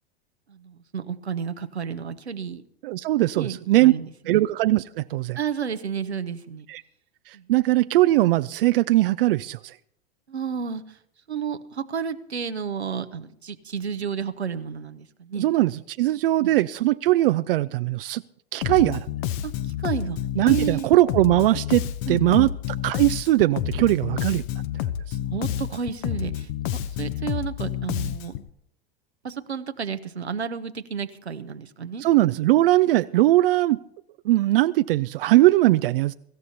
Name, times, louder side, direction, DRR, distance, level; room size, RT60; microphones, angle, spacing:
voice 1, 0.5-2.6 3.3-4.4 5.4-6.7 7.3-7.5 10.3-11.0 11.3-15.5 16.4-16.5 19.4-19.5 19.8-20.2 20.4-20.9 22.1-22.5 25.2-26.5 27.0-28.3 29.2-32.0, right 7 dB, 90° right, 9 dB, 0.9 m, -31 dB
voice 2, 2.8-3.9 4.3-5.4 6.7-6.8 7.3-9.7 15.4-18.2 18.5-19.1 20.4-22.5 22.8-24.4 25.1-25.2 32.0-33.8 34.3-36.1, right 16 dB, 60° right, 12 dB, 0.4 m, -20 dB
Bass guitar, 18.6-28.5, left 11 dB, 50° left, 0.9 m, -29 dB
24.0 x 13.5 x 2.8 m, 0.72 s
figure-of-eight pair, 85°, 32 cm